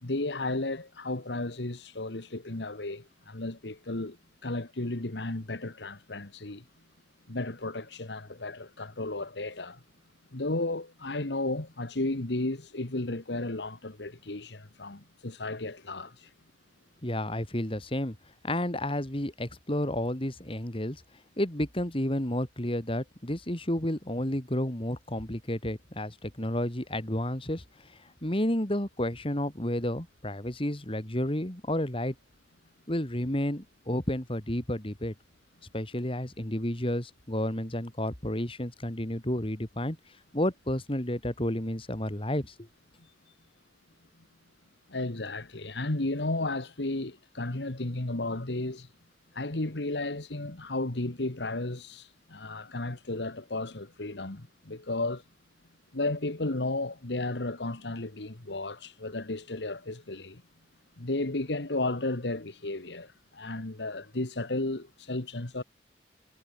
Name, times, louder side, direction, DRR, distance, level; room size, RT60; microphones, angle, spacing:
voice 1, 0.0-4.2 4.4-6.6 7.3-9.8 10.3-16.3 44.9-48.9 49.3-55.2 55.9-60.4 61.0-65.6, left 2 dB, 80° left, 1.8 m, -33 dB
voice 2, 17.0-18.2 18.4-21.0 21.4-27.6 28.2-32.1 32.9-35.1 35.7-40.0 40.3-42.7, left 1 dB, 30° left, 3.1 m, -31 dB
head